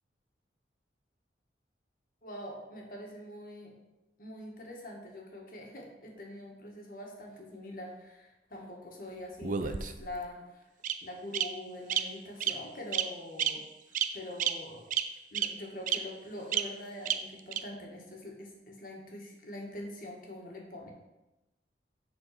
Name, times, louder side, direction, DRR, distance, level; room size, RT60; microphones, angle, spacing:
voice 1, 2.2-3.7 4.2-10.6 11.0-13.6 13.9-14.8 15.3-20.9, left 1 dB, 50° left, 0 dB, 1.7 m, -44 dB
Bird vocalization bird call bird song, 9.4-10.2 10.8-10.9 11.3-11.4 11.9-12.0 12.4-12.5 12.9-13.1 13.4-13.5 13.9-14.1 14.4-14.5 14.9-15.0 15.3-15.5 15.9-16.0 16.5-16.6 17.1-17.2 17.5-17.6, right 9 dB, 45° right, 0.4 m, -29 dB
7.6 x 4.3 x 5.9 m, 0.99 s
head